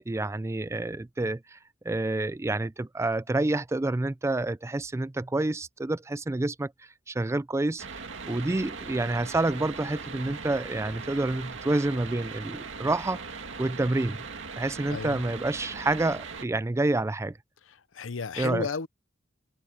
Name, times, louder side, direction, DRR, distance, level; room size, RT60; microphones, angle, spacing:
voice 1, 0.0-1.6 1.8-6.7 7.1-13.2 13.6-14.2 14.6-17.4 18.4-18.7, right 2 dB, 15° right, 0.4 m, -28 dB
sound 1, 7.8-16.5, right 4 dB, 70° right, 2.2 m, -40 dB
voice 2, 14.9-15.2 17.7-18.9, left 4 dB, 85° left, 0.7 m, -33 dB
head